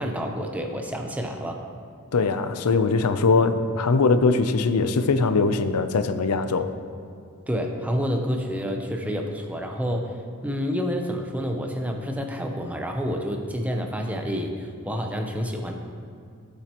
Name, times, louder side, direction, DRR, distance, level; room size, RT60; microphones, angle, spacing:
voice 1, 0.0-1.6 7.5-10.2 10.4-15.8, equal, 5° right, 2 dB, 0.7 m, -28 dB
voice 2, 2.1-6.7, left 4 dB, 90° left, 10 dB, 0.6 m, -21 dB
17.0 x 7.5 x 3.0 m, 2.4 s
head